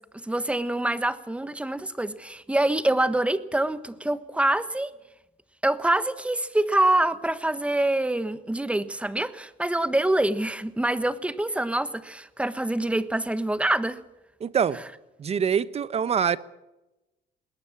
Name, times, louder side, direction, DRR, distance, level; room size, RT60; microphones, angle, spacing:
voice 1, 0.1-4.9 5.6-14.0, right 1 dB, 5° right, 1.2 m, -25 dB
voice 2, 14.4-14.8 15.2-16.4, right 7 dB, 40° right, 1.0 m, -24 dB
20.5 x 18.5 x 7.4 m
cardioid pair, 110°, 17 cm